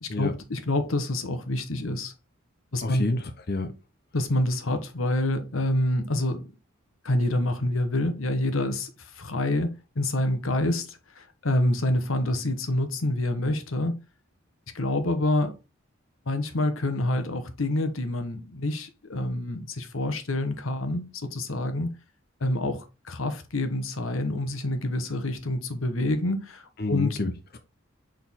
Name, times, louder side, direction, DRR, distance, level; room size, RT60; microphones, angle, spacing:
voice 1, 0.0-2.1 2.7-3.1 4.1-6.5 7.0-14.0 14.7-15.5 16.3-21.9 22.4-27.2, left 1 dB, 85° left, 1.2 m, -27 dB
voice 2, 2.8-3.7 26.8-27.6, left 2 dB, 50° left, 0.8 m, -29 dB
6.3 x 4.5 x 3.6 m
head